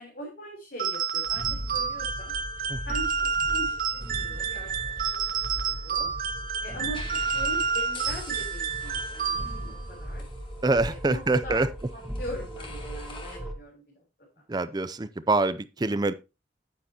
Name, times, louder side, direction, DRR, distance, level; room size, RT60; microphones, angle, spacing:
voice 1, 0.0-2.3 2.9-3.7 4.1-4.7 5.1-5.3 5.5-6.1 6.6-10.3 10.8-11.6 11.9-14.0, equal, 60° left, 3.7 m, -41 dB
sound 1, 0.8-9.8, right 6 dB, 50° right, 1.3 m, -29 dB
sound 2, 1.3-13.5, equal, ahead, 1.4 m, -38 dB
sound 3, 4.0-6.1 6.8-13.4, left 3 dB, 30° left, 1.6 m, -48 dB
voice 2, 10.6-11.7 14.5-16.1, right 2 dB, 25° right, 0.4 m, -25 dB
9.6 x 9.4 x 2.9 m
head